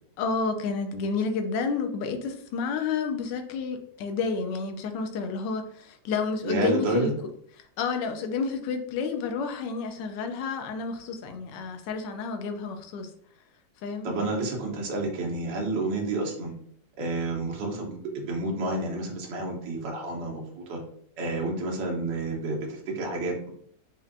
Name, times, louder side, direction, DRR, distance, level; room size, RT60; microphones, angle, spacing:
voice 1, 0.2-7.1 7.6-13.1 13.8-14.1, left 5 dB, 80° left, 5 dB, 1.2 m, -30 dB
voice 2, 6.4-7.1 14.0-16.5 17.0-20.8 21.2-23.5, right 2 dB, 80° right, -1 dB, 1.5 m, -30 dB
4.4 x 2.5 x 2.6 m, 0.64 s
omnidirectional pair, 1.9 m